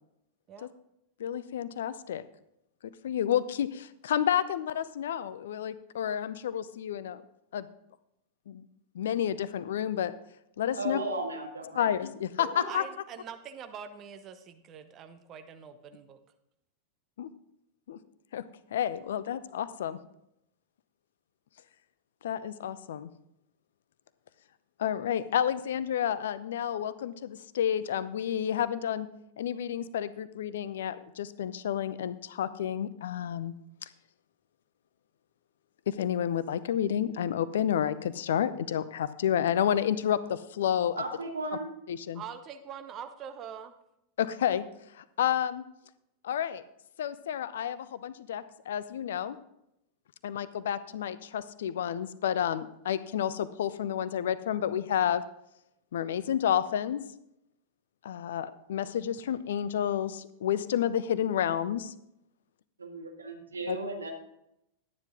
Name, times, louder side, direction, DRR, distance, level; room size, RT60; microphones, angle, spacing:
voice 1, 1.2-2.2 3.0-7.2 7.5-7.7 8.5-8.6 8.9-10.1 10.6-11.0 11.8-12.8 17.2-17.3 17.9-18.0 18.3-18.4 18.7-20.0 22.2-23.1 24.8-29.1 29.4-33.5 33.8-33.9 35.9-41.0 41.9-42.2 44.2-44.7 44.9-45.6 46.2-46.6 47.0-49.4 50.2-55.2 55.9-57.0 58.0-61.9 63.7-63.8, left 9 dB, 60° left, 15 dB, 0.6 m, -30 dB
voice 2, 10.8-11.9 12.6-12.7 41.0-41.7 62.8-64.1, right 2 dB, 75° right, 2 dB, 1.9 m, -35 dB
voice 3, 12.6-16.2 42.1-43.7, right 8 dB, 30° right, 9 dB, 0.9 m, -44 dB
12.0 x 9.7 x 3.7 m, 0.80 s
figure-of-eight pair, 90°, 0 cm